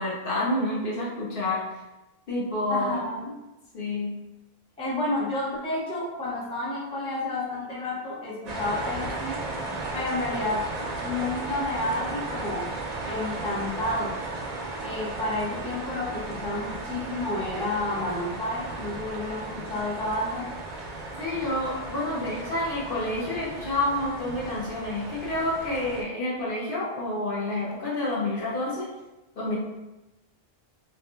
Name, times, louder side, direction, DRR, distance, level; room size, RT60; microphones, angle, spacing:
voice 1, 0.0-1.6 2.3-2.9 3.7-4.1 21.2-28.9 29.4-29.6, left 1 dB, 60° left, -5 dB, 0.9 m, -28 dB
voice 2, 2.7-3.3 4.8-9.4 9.9-10.7 11.0-12.7 13.1-14.2 14.8-20.5, left 2 dB, 10° left, -6 dB, 0.4 m, -30 dB
sound 1, 8.5-26.0, right 2 dB, 55° right, 0.5 m, -35 dB
2.7 x 2.5 x 2.3 m, 1.0 s
omnidirectional pair, 1.0 m